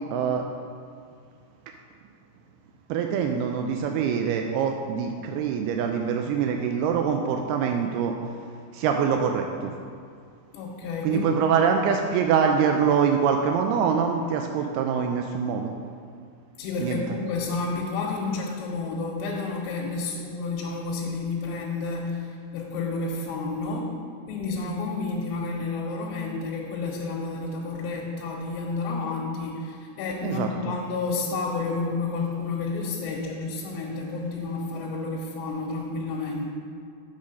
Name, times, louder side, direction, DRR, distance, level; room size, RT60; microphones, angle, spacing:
voice 1, 0.1-0.5 2.9-8.2 8.7-9.7 11.0-15.7 16.8-17.0 30.2-30.5, right 7 dB, 85° right, 3 dB, 2.2 m, -24 dB
voice 2, 10.5-11.8 16.6-22.3 22.5-23.9 24.3-36.5, left 3 dB, 85° left, -3 dB, 3.0 m, -30 dB
7.1 x 6.5 x 5.4 m, 2.2 s
omnidirectional pair, 5.0 m